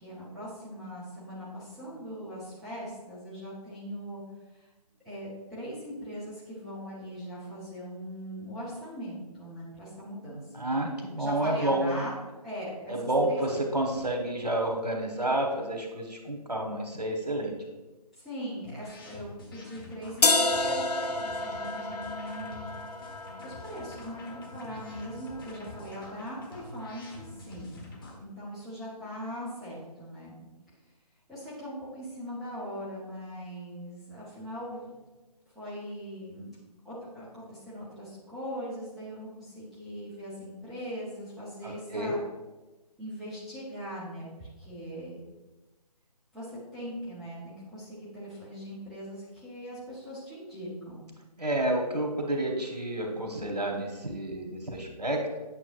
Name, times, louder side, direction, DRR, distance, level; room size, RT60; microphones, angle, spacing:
voice 1, 0.0-4.2 5.0-10.4 11.2-12.1 12.4-12.9 13.2-13.4 18.2-22.7 23.4-27.8 28.2-30.3 31.3-34.9 35.5-36.6 36.8-42.2 43.0-45.2 46.3-51.0, equal, ahead, -11 dB, 0.7 m, -40 dB
voice 2, 10.5-12.0 12.9-17.6 41.6-42.1 51.4-55.2, right 1 dB, 80° right, 1 dB, 1.5 m, -30 dB
sound 1, 18.6-28.2, left 2 dB, 35° left, 1.1 m, -47 dB
sound 2, 20.2-26.2, left 2 dB, 75° left, 0.6 m, -31 dB
8.7 x 6.2 x 2.5 m, 1.2 s
figure-of-eight pair, 145°, 20 cm